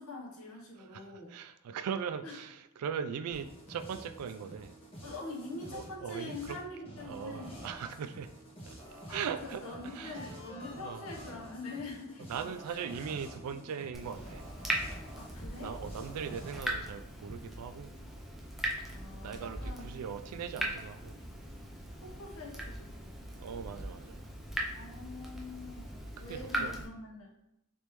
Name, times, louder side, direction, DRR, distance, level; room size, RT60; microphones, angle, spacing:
voice 1, 0.0-1.4 2.2-2.4 5.0-7.7 9.1-12.8 13.5-13.6 15.2-15.8 18.9-19.9 22.0-23.1 24.7-27.3, left 2 dB, 70° left, -2 dB, 0.9 m, -44 dB
voice 2, 0.8-4.7 5.7-6.6 7.0-8.3 9.1-10.2 10.7-11.1 12.3-14.4 15.5-17.9 19.1-21.2 23.4-24.2 26.2-26.8, right 7 dB, 80° right, 10 dB, 0.3 m, -40 dB
sound 1, 3.3-16.6, right 1 dB, 25° left, 1.1 m, -49 dB
Water tap faucet / Drip, 13.9-26.9, right 1 dB, ahead, 0.4 m, -40 dB
3.4 x 3.1 x 3.0 m, 0.81 s
head